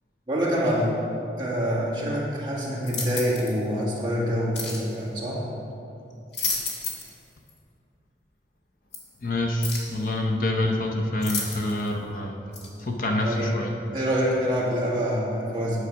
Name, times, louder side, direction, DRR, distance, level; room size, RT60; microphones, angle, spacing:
voice 1, 0.3-0.9 1.4-5.4 13.2-13.5 13.9-15.8, equal, 25° right, -6 dB, 1.9 m, -26 dB
sound 1, 2.8-3.6 4.5-4.9 6.1-7.2 7.5-7.6 8.9-9.0 9.6-10.0 11.2-11.9 12.5-12.7, left 4 dB, 80° left, 1.7 m, -31 dB
voice 2, 9.2-12.4 12.8-13.7, left 1 dB, 50° left, 2 dB, 0.7 m, -26 dB
9.8 x 4.8 x 6.2 m, 2.7 s
head